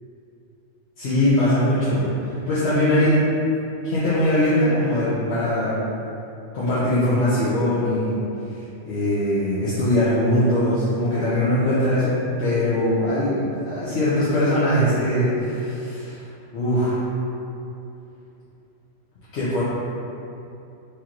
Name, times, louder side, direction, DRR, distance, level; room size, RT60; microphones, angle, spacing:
voice 1, 1.0-3.2 3.8-5.8 6.5-8.2 8.5-16.3 16.5-17.0 19.3-19.6, left 1 dB, 60° left, -11 dB, 1.0 m, -21 dB
4.4 x 3.3 x 2.5 m, 2.8 s
omnidirectional pair, 1.3 m